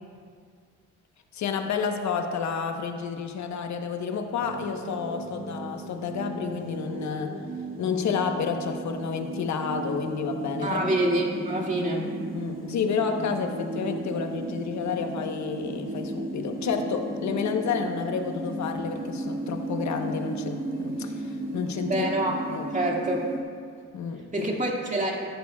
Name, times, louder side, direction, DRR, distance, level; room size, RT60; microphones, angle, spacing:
voice 1, 1.3-7.4 7.8-10.9 12.3-22.1 22.5-22.7 23.9-24.3, left 6 dB, 65° left, 5 dB, 1.2 m, -30 dB
sound 1, 4.4-23.4, right 2 dB, 40° right, 2.1 m, -35 dB
voice 2, 10.6-12.1 21.9-22.4 22.7-23.3 24.3-25.3, right 1 dB, 25° right, -1 dB, 2.3 m, -26 dB
13.5 x 13.5 x 2.4 m, 2.1 s
cardioid pair, 90°, 30 cm